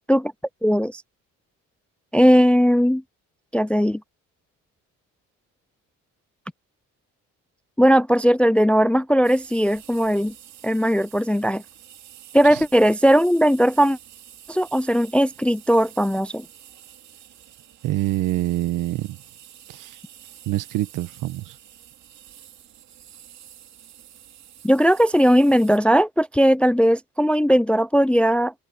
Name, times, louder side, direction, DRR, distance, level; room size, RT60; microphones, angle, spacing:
voice 1, 0.6-1.0 2.1-3.0 3.5-4.0 7.8-10.3 10.6-11.6 12.3-14.0 14.5-16.4 24.6-28.5, equal, 5° left, 0.4 m, -18 dB
sound 1, 9.2-25.8, right 11 dB, 55° right, 3.3 m, -48 dB
voice 2, 17.8-19.2 19.7-20.0 20.5-21.6, right 15 dB, 75° right, 1.4 m, -26 dB
open air
cardioid pair, 130°, 32 cm